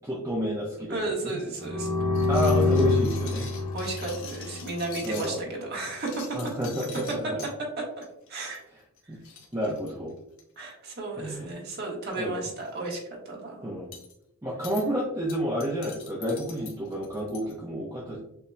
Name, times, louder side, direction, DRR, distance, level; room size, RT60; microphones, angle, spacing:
voice 1, 0.0-1.4 2.3-3.5 5.0-5.4 6.3-7.4 9.1-9.2 9.5-10.1 11.1-11.4 12.2-12.5 13.6-13.9 14.4-18.2, equal, 15° right, -5 dB, 0.7 m, -30 dB
voice 2, 0.9-1.9 3.7-6.4 7.6-8.6 10.6-13.7, right 2 dB, 50° right, -2 dB, 1.3 m, -34 dB
sound 1, 1.5-5.3 5.8-7.5 8.0-8.3 8.5-8.7 9.0-9.1 9.2-10.6 11.4-11.7 12.0-12.2 12.6-13.0 13.9-14.1 14.6-14.8 15.3-17.5, left 6 dB, 70° left, 1.0 m, -44 dB
sound 2, 1.6-5.3, left 3 dB, 45° left, 1.3 m, -26 dB
6.7 x 3.0 x 2.2 m, 0.80 s
head